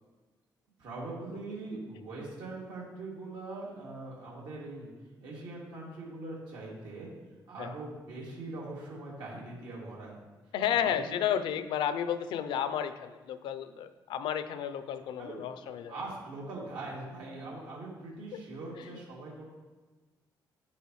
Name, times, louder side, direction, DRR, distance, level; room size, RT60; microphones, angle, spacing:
voice 1, 0.8-4.9 5.2-7.1 7.5-10.2 11.0-11.1 15.2-15.4 15.9-19.4, right 2 dB, 85° right, -5 dB, 2.5 m, -42 dB
voice 2, 10.5-16.0 18.3-18.4, left 9 dB, 85° left, 12 dB, 0.5 m, -32 dB
8.6 x 7.3 x 3.1 m, 1.3 s
cardioid pair, 75°, 8 cm